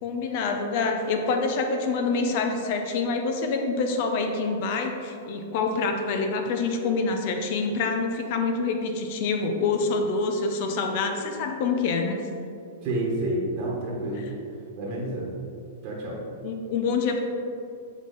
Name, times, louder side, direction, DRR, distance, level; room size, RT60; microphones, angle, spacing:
voice 1, 0.0-12.2 16.4-17.2, left 4 dB, 55° left, 4 dB, 0.8 m, -26 dB
voice 2, 12.8-14.3 14.7-15.3 15.8-16.2, right 1 dB, 45° right, -3 dB, 1.3 m, -29 dB
7.0 x 4.3 x 4.0 m, 2.6 s
hypercardioid pair, 110°, 0 cm